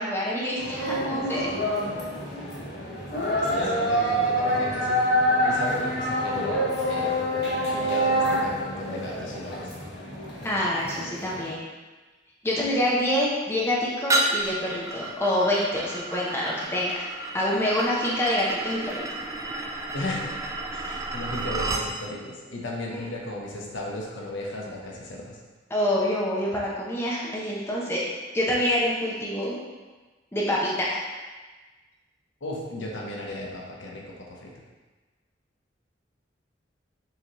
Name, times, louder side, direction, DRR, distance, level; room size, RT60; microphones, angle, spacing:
voice 1, 0.0-1.5 10.4-11.6 12.4-17.1 17.3-19.0 25.7-28.0 28.3-29.6 30.3-31.0, left 1 dB, 15° left, -5 dB, 0.7 m, -26 dB
sound 1, 0.6-11.5, equal, 60° left, 1.1 m, -26 dB
voice 2, 3.4-5.0 5.4-7.3 7.7-9.7 19.9-20.4 20.7-25.4 32.4-34.5, left 1 dB, 80° left, -2 dB, 0.8 m, -35 dB
sound 2, 14.1-21.9, right 2 dB, 15° right, 0.3 m, -31 dB
5.6 x 2.8 x 3.0 m, 1.3 s
head